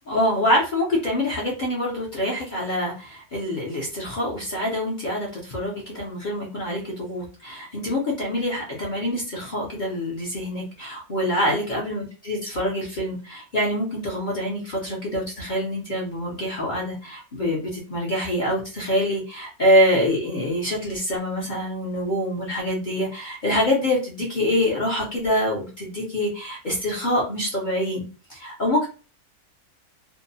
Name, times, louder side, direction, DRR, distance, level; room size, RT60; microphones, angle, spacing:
voice 1, 0.1-28.0 28.3-28.9, left 1 dB, 45° left, -4 dB, 0.7 m, -25 dB
2.7 x 2.1 x 2.6 m, 0.34 s
omnidirectional pair, 1.6 m